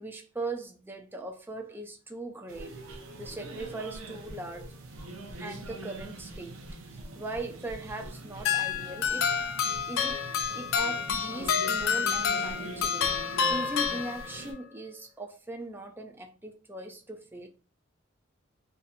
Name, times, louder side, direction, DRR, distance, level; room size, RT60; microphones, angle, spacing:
voice 1, 0.0-2.8 3.1-4.7 5.4-6.6 6.9-9.3 9.9-10.2 10.5-17.5, right 2 dB, 10° right, 0.4 m, -39 dB
sound 1, 2.5-14.5, right 2 dB, 80° right, 0.7 m, -43 dB
sound 2, 8.5-14.6, left 6 dB, 75° left, 0.5 m, -29 dB
2.7 x 2.5 x 4.1 m
head